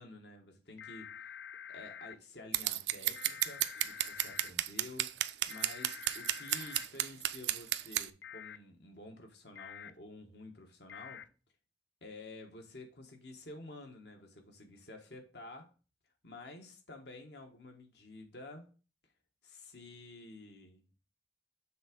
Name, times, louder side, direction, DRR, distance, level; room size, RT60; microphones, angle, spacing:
voice 1, 0.0-1.4 1.7-11.3 12.0-15.7 16.2-18.7 19.4-20.8, left 2 dB, 70° left, 3 dB, 1.4 m, -51 dB
sound 1, 0.8-2.2 3.1-4.5 5.5-6.9 8.2-8.6 9.6-9.9 10.9-11.2, left 8 dB, 85° left, 0.5 m, -47 dB
Scissors, 2.5-8.1, right 13 dB, 75° right, 0.4 m, -32 dB
7.6 x 3.5 x 5.2 m, 0.35 s
head